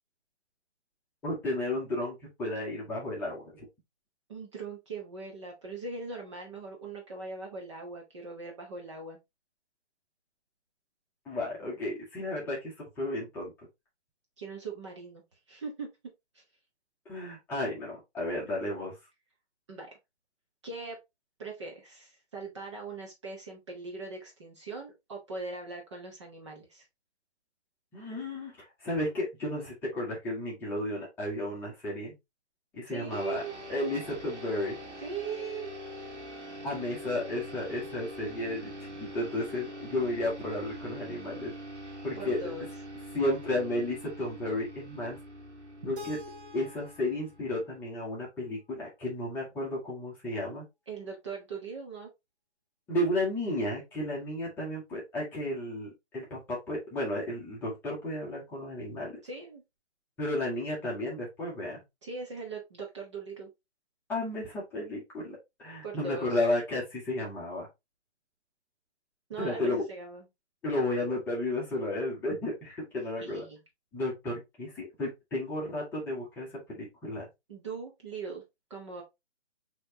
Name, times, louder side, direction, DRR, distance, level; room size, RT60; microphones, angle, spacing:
voice 1, 1.2-3.6 11.2-13.5 17.1-19.0 27.9-28.5 28.8-32.1 32.7-33.4 33.7-34.8 36.6-41.5 42.0-42.4 43.1-45.2 45.8-46.2 46.5-50.6 52.9-59.1 60.2-61.8 64.1-67.7 69.4-69.8 70.6-73.4 73.9-77.2, left 1 dB, 5° left, -5 dB, 1.1 m, -33 dB
voice 2, 4.3-9.2 14.4-15.2 15.5-15.9 16.3-16.4 19.7-19.9 20.6-21.0 21.4-26.9 32.8-33.6 35.0-35.7 41.8-42.7 45.8-45.9 50.9-52.1 59.2-59.6 62.0-63.5 65.8-66.4 69.3-70.3 73.2-73.6 77.5-78.4 78.7-79.0, right 4 dB, 25° right, 0 dB, 0.9 m, -40 dB
sound 1, 33.1-47.9, equal, 80° right, 1.5 m, -44 dB
Keyboard (musical), 46.0-48.9, left 2 dB, 50° right, 1.0 m, -49 dB
6.2 x 3.1 x 2.8 m, 0.21 s
figure-of-eight pair, 140°, 34 cm